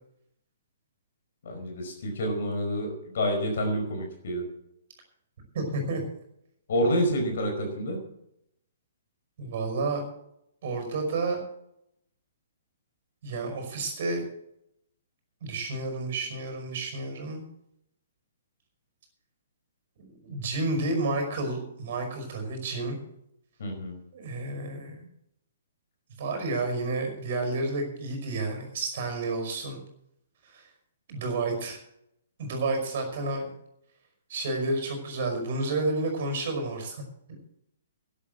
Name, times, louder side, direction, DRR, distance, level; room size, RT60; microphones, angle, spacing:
voice 1, 1.4-4.4 6.7-8.0 23.6-24.0, equal, 50° left, 3 dB, 4.9 m, -28 dB
voice 2, 5.5-6.0 9.4-10.0 10.6-11.4 13.2-14.2 15.4-17.4 20.2-23.0 24.1-25.1 26.2-29.8 30.4-30.6 31.1-31.8 32.4-33.5 34.3-37.0, right 2 dB, 45° right, 4 dB, 5.4 m, -30 dB
12.5 x 10.5 x 7.6 m, 0.78 s
figure-of-eight pair, 120°, 0 cm